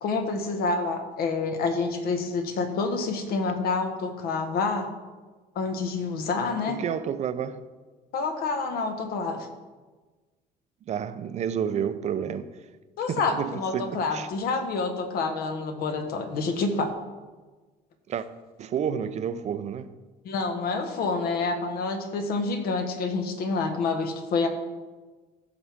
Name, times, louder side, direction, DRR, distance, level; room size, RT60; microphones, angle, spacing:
voice 1, 0.0-4.9 5.5-6.8 8.1-9.5 13.0-16.9 20.2-24.5, left 4 dB, 65° left, 1.5 m, -28 dB
voice 2, 6.7-7.6 10.9-12.6 13.0-14.3 18.1-18.3 18.6-19.9, right 8 dB, 45° right, 0.6 m, -30 dB
15.0 x 6.1 x 3.6 m
cardioid pair, 130°, 17 cm